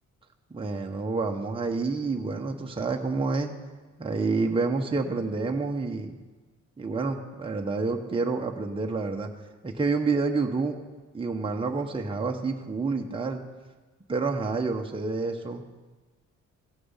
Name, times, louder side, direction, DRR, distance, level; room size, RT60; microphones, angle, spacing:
voice 1, 0.5-3.6 4.0-6.2 6.8-9.3 9.6-10.8 11.1-13.4 14.1-15.6, right 3 dB, 20° right, 2 dB, 0.9 m, -28 dB
15.5 x 6.7 x 5.6 m, 1.3 s
cardioid pair, 90°, 29 cm